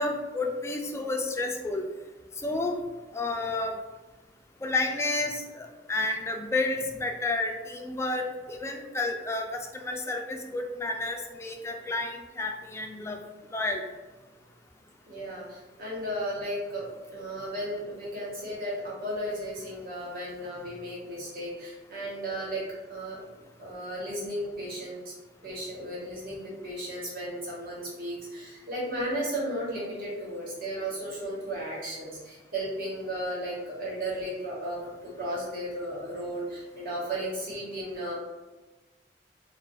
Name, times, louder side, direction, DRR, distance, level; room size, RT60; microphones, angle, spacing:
voice 1, 0.0-1.8 2.4-2.8 3.1-3.8 4.6-13.2 13.5-13.8, left 2 dB, 15° left, 3 dB, 0.3 m, -31 dB
voice 2, 15.1-16.8 17.1-22.6 22.9-23.2 23.6-25.1 25.4-38.1, right 1 dB, 55° right, -6 dB, 1.2 m, -34 dB
2.4 x 2.4 x 3.8 m, 1.2 s
head